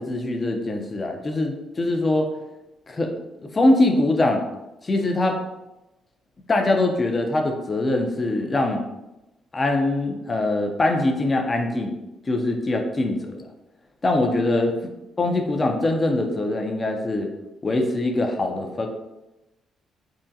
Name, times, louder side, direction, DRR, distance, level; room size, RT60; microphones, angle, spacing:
voice 1, 0.0-2.3 2.9-3.1 3.5-4.4 4.8-5.4 6.5-8.8 9.5-11.9 12.3-13.5 14.0-14.7 15.2-17.3 17.6-18.9, left 2 dB, 30° left, 3 dB, 0.5 m, -22 dB
3.6 x 2.1 x 2.7 m, 0.95 s
cardioid pair, 90°, 0 cm